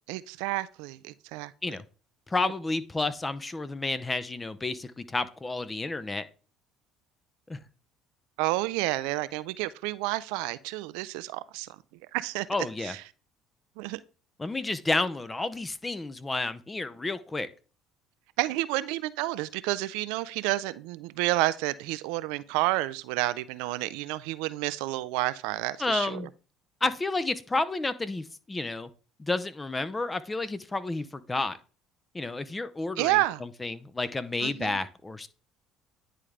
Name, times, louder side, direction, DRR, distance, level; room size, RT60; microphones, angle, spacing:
voice 1, 0.1-1.5 8.4-11.8 12.1-12.5 12.8-13.0 13.8-14.0 18.4-26.2 33.0-33.4 34.4-34.8, right 18 dB, 75° right, 0.3 m, -30 dB
voice 2, 2.3-6.3 7.5-7.6 12.5-12.9 14.4-17.5 25.8-26.3 26.8-28.9 29.2-31.6 32.1-35.3, left 2 dB, 20° left, 0.6 m, -31 dB
9.9 x 3.6 x 3.3 m
hypercardioid pair, 70°, 0 cm